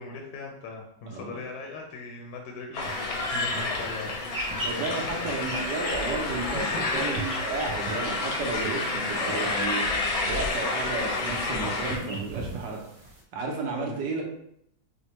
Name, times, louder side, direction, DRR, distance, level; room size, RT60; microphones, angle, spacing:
voice 1, 0.0-4.3 5.0-5.4 6.5-7.1 13.7-14.0, left 3 dB, 75° left, 1 dB, 1.1 m, -39 dB
voice 2, 1.1-1.4 4.0-4.1 4.6-9.9 10.3-12.8 13.3-14.2, right 3 dB, 75° right, 0 dB, 1.2 m, -32 dB
sound 1, 2.7-12.0, left 3 dB, 90° left, 1.5 m, -29 dB
sound 2, 2.8-13.2, right 2 dB, 40° right, 1.5 m, -40 dB
5.0 x 2.0 x 2.9 m, 0.73 s
omnidirectional pair, 2.1 m